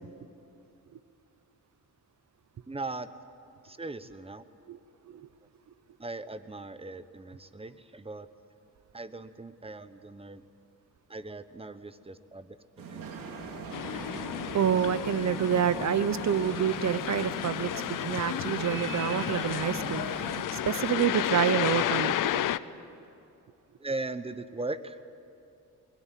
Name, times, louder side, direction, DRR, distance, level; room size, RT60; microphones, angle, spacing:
voice 1, 2.7-3.1 3.6-4.4 6.0-8.3 8.9-10.4 11.1-12.6 12.9-13.1 23.8-25.0, right 2 dB, 20° right, 12 dB, 1.1 m, -39 dB
sound 1, 12.8-20.5, right 4 dB, 90° right, 3.3 m, -40 dB
sound 2, 13.7-22.6, left 13 dB, 75° left, 0.6 m, -32 dB
voice 2, 14.5-17.7 18.0-22.6, right 8 dB, 60° right, 15 dB, 1.0 m, -28 dB
21.5 x 20.5 x 9.2 m, 2.7 s
cardioid pair, 90°, 32 cm